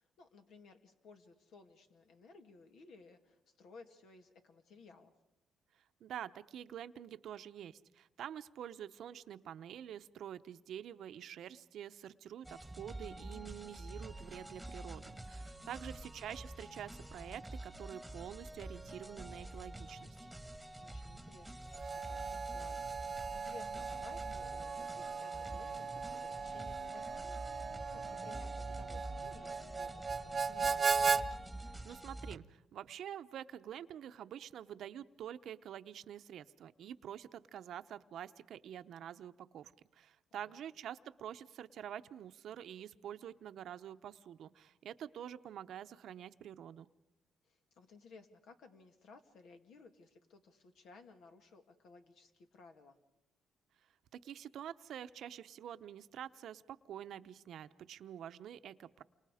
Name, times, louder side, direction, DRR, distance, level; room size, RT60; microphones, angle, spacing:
voice 1, 0.0-5.1 15.6-16.0 20.8-31.0 40.3-40.6 47.4-53.0, left 4 dB, 75° left, 6 dB, 2.3 m, -59 dB
voice 2, 6.0-20.2 31.6-46.9 54.1-59.0, right 10 dB, 70° right, 12 dB, 0.8 m, -47 dB
sound 1, 12.4-32.4, right 1 dB, 5° right, 1.6 m, -48 dB
Harmonica, 21.7-31.2, right 5 dB, 35° right, 0.9 m, -37 dB
sound 2, 23.9-30.0, left 2 dB, 55° left, 5.0 m, -62 dB
29.0 x 25.5 x 5.0 m, 0.91 s
cardioid pair, 90°, 0 cm